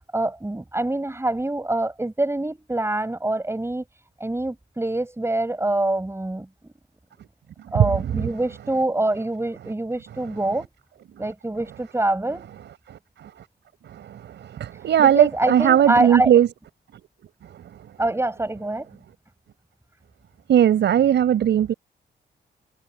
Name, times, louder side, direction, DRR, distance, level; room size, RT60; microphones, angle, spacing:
voice 1, 0.0-3.8 4.2-6.7 7.7-10.7 11.2-12.5 15.0-16.3 18.0-18.9, right 2 dB, 15° right, 6.5 m, -25 dB
voice 2, 7.7-8.3 12.9-13.3 13.9-16.5 17.4-17.6 20.5-21.7, right 10 dB, 90° right, 6.1 m, -19 dB
cardioid pair, 95°, 18 cm